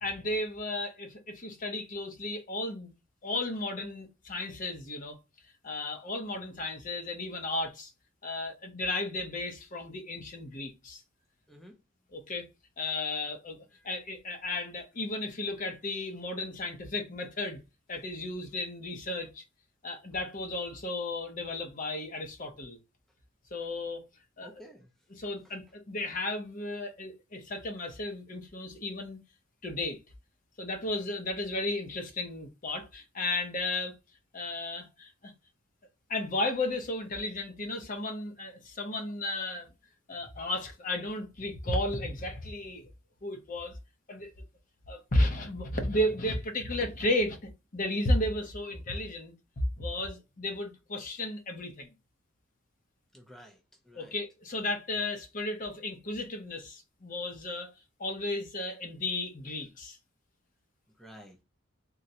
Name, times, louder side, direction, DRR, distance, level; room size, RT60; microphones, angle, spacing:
voice 1, 0.0-2.9 3.2-5.2 5.6-7.9 8.2-11.0 12.1-12.5 12.8-17.6 17.9-19.4 19.8-22.8 23.5-24.1 24.4-24.6 25.1-29.2 29.6-30.0 30.6-33.9 34.3-35.3 36.1-39.7 40.1-42.9 43.2-43.8 44.1-44.3 44.9-49.3 49.8-51.9 54.0-57.7 58.0-60.0, left 1 dB, 40° left, 0.7 m, -34 dB
voice 2, 24.4-24.9 53.1-54.1 61.0-61.4, equal, ahead, 0.4 m, -52 dB
3.7 x 2.1 x 2.7 m
head